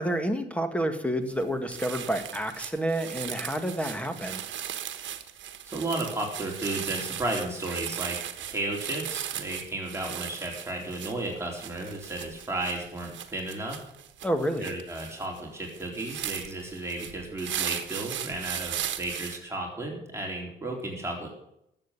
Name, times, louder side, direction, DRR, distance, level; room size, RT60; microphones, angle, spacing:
voice 1, 0.0-4.4 14.2-14.7, right 1 dB, 5° left, 8 dB, 1.8 m, -29 dB
sound 1, 1.3-1.4 1.7-19.4, right 10 dB, 70° right, 1.3 m, -37 dB
voice 2, 5.6-13.8 14.6-21.3, right 2 dB, 15° right, -1 dB, 3.8 m, -33 dB
12.5 x 7.7 x 8.3 m, 0.78 s
cardioid pair, 90°, 20 cm